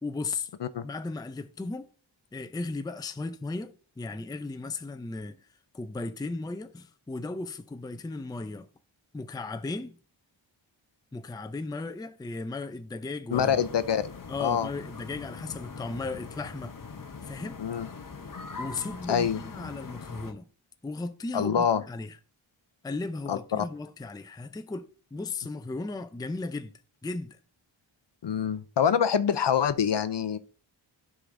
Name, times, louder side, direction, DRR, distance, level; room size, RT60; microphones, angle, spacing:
voice 1, 0.0-0.5 0.8-1.9 2.3-5.5 5.7-8.7 9.1-10.0 11.1-13.6 14.3-16.8 17.2-17.6 18.6-20.5 20.8-22.2 22.8-26.7 27.0-27.4, left 3 dB, 10° left, 0.4 m, -36 dB
voice 2, 13.3-14.7 17.6-17.9 19.1-19.4 21.3-21.8 23.3-23.7 28.2-30.4, left 8 dB, 60° left, 0.6 m, -26 dB
sound 1, 13.3-20.3, left 4 dB, 40° left, 0.9 m, -42 dB
11.0 x 5.0 x 2.6 m
wide cardioid pair, 85°, 49 cm